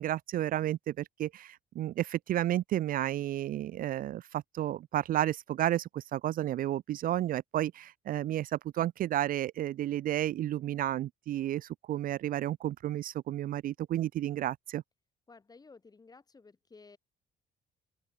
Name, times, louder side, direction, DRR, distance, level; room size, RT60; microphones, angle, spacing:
voice 1, 0.0-14.8, right 13 dB, 55° right, 0.6 m, -32 dB
voice 2, 15.3-17.0, left 4 dB, 20° left, 4.5 m, -55 dB
open air
cardioid pair, 110°, 17 cm